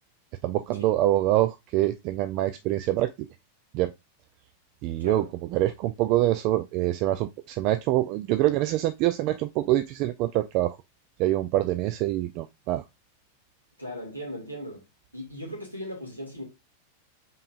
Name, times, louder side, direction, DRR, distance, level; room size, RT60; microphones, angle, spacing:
voice 1, 0.4-3.3 3.7-3.9 4.8-5.3 5.5-10.8 11.2-12.8, right 15 dB, 40° right, 0.3 m, -25 dB
voice 2, 13.8-14.8 15.1-16.4, equal, 90° right, 2.1 m, -38 dB
5.4 x 3.8 x 2.5 m
figure-of-eight pair, 90°, 0 cm